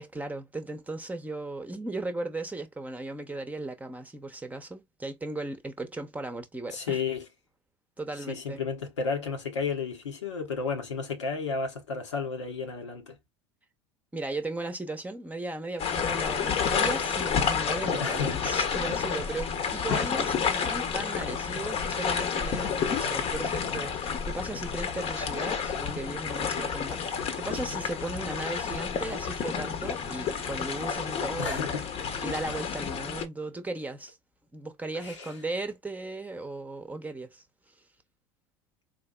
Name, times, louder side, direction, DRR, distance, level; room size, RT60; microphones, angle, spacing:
voice 1, 0.0-7.0 8.0-8.6 14.1-31.8 32.2-34.2 34.5-37.4, right 2 dB, 10° right, 0.8 m, -36 dB
voice 2, 6.7-7.3 8.3-13.2 17.9-18.4 31.4-31.9 34.9-35.3, left 5 dB, 85° left, 1.0 m, -32 dB
sound 1, 15.8-33.3, left 6 dB, 40° left, 0.9 m, -30 dB
4.0 x 2.8 x 2.3 m
hypercardioid pair, 80°, 15 cm